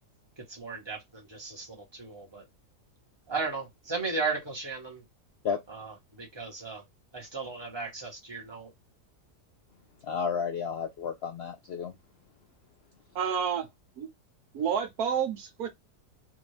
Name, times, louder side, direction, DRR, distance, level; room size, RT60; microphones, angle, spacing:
voice 1, 0.5-2.4 3.3-5.0 5.7-6.8 7.1-8.7, right 4 dB, 20° right, 1.1 m, -35 dB
voice 2, 10.0-11.9, left 6 dB, 90° left, 0.5 m, -32 dB
voice 3, 13.1-13.7 14.0-14.1 14.5-15.7, right 7 dB, 70° right, 1.2 m, -29 dB
3.6 x 2.6 x 3.2 m
omnidirectional pair, 1.8 m